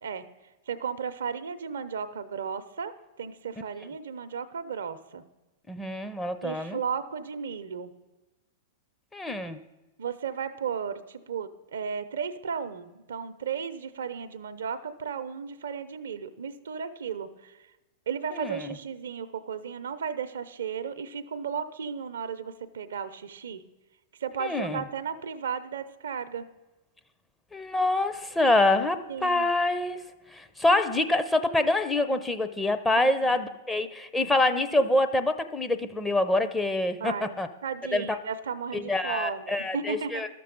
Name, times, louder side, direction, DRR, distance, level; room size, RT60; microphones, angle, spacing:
voice 1, 0.7-5.2 6.4-7.9 10.0-17.6 18.1-23.6 24.2-26.5 29.1-29.5 33.0-33.4 37.0-40.2, right 6 dB, 80° right, 12 dB, 0.6 m, -35 dB
voice 2, 5.7-6.8 9.1-9.6 18.4-18.7 24.4-24.8 27.5-37.5 37.9-38.2 38.7-40.3, left 2 dB, 10° left, 8 dB, 0.7 m, -26 dB
12.5 x 6.7 x 5.2 m, 1.1 s
hypercardioid pair, 110°, 0 cm